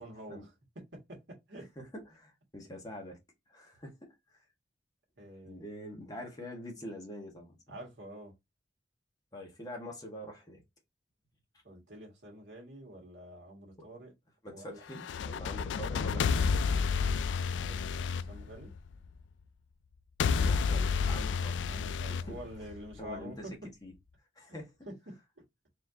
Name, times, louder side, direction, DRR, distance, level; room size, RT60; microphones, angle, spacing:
voice 1, 0.0-1.7 5.2-5.7 7.7-8.4 11.6-14.1 14.5-14.8 15.5-15.7 17.6-18.7 21.7-23.7 24.5-24.6 24.9-25.4, right 1 dB, 70° right, 1.9 m, -47 dB
voice 2, 1.8-3.2 3.5-4.4 5.4-7.8 9.3-10.6 13.8-13.9 14.4-16.7 20.4-21.6 22.1-22.4 23.0-23.5 23.8-23.9 24.3-24.7, equal, 20° left, 1.6 m, -45 dB
sound 1, 14.9-19.1 20.2-23.1, left 5 dB, 80° left, 0.3 m, -30 dB
4.3 x 3.2 x 2.7 m
head